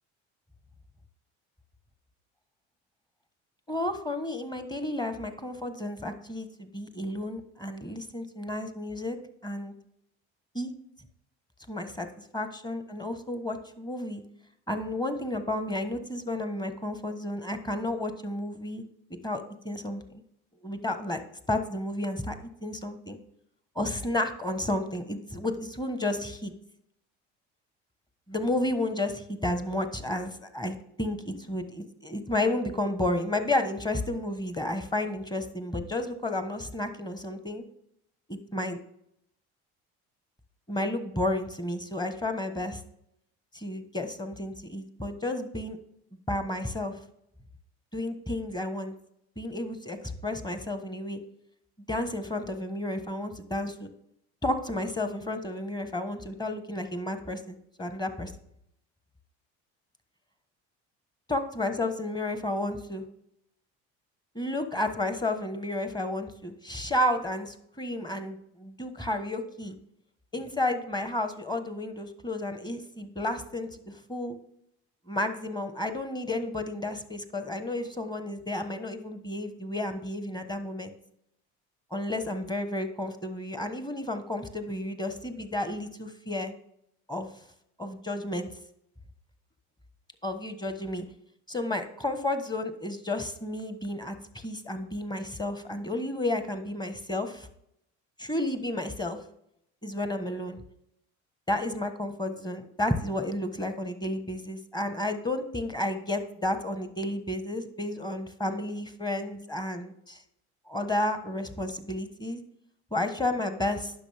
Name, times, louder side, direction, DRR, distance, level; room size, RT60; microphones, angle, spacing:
voice 1, 3.7-9.2 9.4-9.7 10.5-10.7 11.7-12.1 12.3-14.2 14.7-18.8 19.2-20.2 20.6-21.2 21.5-22.3 22.6-23.2 23.7-26.5 28.3-37.6 38.3-38.8 40.7-42.8 43.5-45.8 46.3-47.0 47.9-48.9 49.4-51.2 51.9-53.9 54.4-58.3 61.3-63.0 64.3-69.7 70.3-74.3 75.1-80.9 81.9-86.5 87.1-87.3 87.8-88.5 90.2-91.1 91.5-97.5 98.2-99.2 99.8-100.6 101.5-110.2 110.7-112.4 112.9-113.9, left 1 dB, 15° left, 8 dB, 1.2 m, -32 dB
10.0 x 6.3 x 3.5 m, 0.75 s
supercardioid pair, 75°, 33 cm